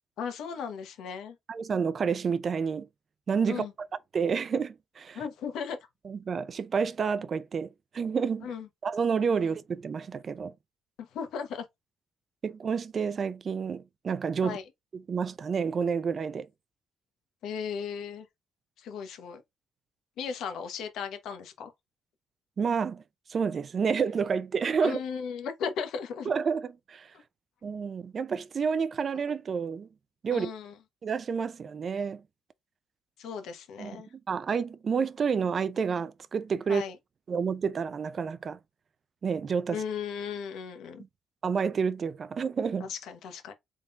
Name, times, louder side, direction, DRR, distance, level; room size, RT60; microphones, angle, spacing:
voice 1, 0.2-1.4 3.5-3.7 5.1-5.8 8.4-8.7 11.0-11.6 14.4-14.6 17.4-18.3 18.8-19.4 20.2-21.7 24.8-26.3 30.3-30.7 33.2-34.1 36.7-37.0 39.7-41.0 42.8-43.5, left 6 dB, 80° left, 1.0 m, -36 dB
voice 2, 1.5-2.9 3.3-3.9 4.1-5.2 6.0-8.5 8.8-10.5 12.4-14.6 15.1-16.5 22.6-23.0 23.3-25.0 26.3-27.1 27.6-29.9 30.2-30.5 31.0-32.2 33.8-36.8 37.3-38.6 39.2-39.8 41.4-42.9, right 6 dB, 45° right, 0.4 m, -29 dB
3.7 x 3.6 x 2.5 m
cardioid pair, 90°, 0 cm